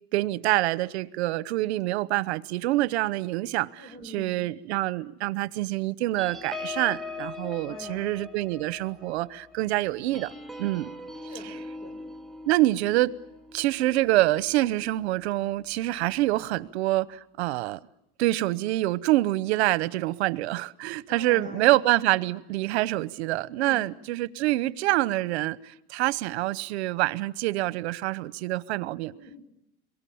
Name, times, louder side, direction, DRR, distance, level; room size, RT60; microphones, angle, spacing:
voice 1, 0.1-10.3 10.6-10.9 12.5-13.1 13.5-17.8 18.2-29.1, right 17 dB, 80° right, 1.0 m, -26 dB
voice 2, 3.8-4.3 7.7-8.0 11.2-12.0 21.1-21.8 23.6-23.8 29.1-29.4, left 1 dB, 25° left, 5.5 m, -44 dB
sound 1, 6.2-15.1 15.5-15.7 16.0-16.3, left 3 dB, ahead, 1.2 m, -41 dB
27.0 x 23.0 x 8.6 m
supercardioid pair, 145°, 32 cm